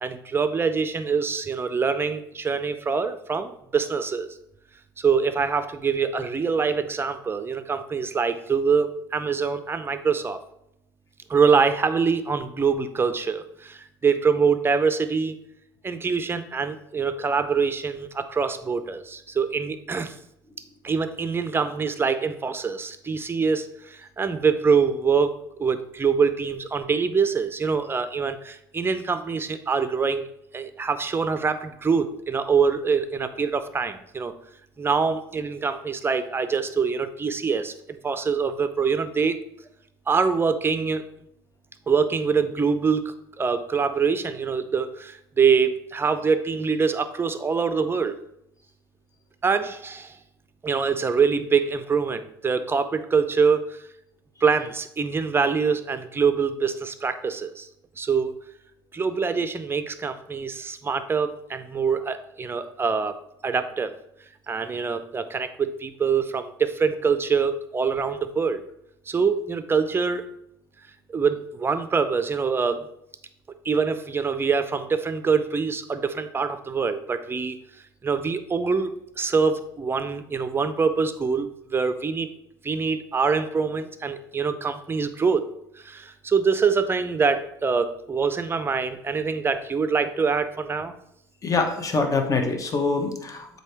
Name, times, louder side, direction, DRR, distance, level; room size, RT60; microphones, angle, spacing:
voice 1, 0.0-4.3 5.0-10.4 11.3-15.3 15.8-20.1 20.8-30.3 30.5-34.4 34.8-39.4 40.1-41.1 41.9-48.2 49.4-50.2 50.6-53.8 54.4-57.7 58.0-58.3 58.9-63.2 63.4-63.9 64.5-68.6 69.1-70.2 71.1-72.9 73.6-77.6 78.0-78.9 79.2-82.3 82.6-85.5 85.8-90.9, right 5 dB, 20° right, 10 dB, 0.6 m, -24 dB
voice 2, 91.4-93.6, left 3 dB, 30° left, 5 dB, 1.1 m, -24 dB
7.6 x 2.8 x 4.5 m, 0.77 s
hypercardioid pair, 70°, 12 cm